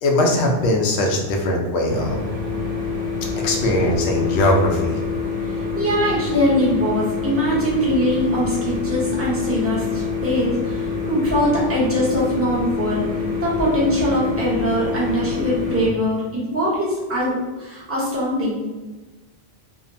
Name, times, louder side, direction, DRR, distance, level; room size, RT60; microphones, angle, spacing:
voice 1, 0.0-2.2 3.4-5.0, left 1 dB, 80° left, 1 dB, 0.8 m, -20 dB
sound 1, 1.9-15.9, left 5 dB, 75° right, 1.0 m, -26 dB
voice 2, 5.4-18.6, equal, 15° right, -6 dB, 0.6 m, -22 dB
2.8 x 2.0 x 2.6 m, 1.2 s
omnidirectional pair, 1.1 m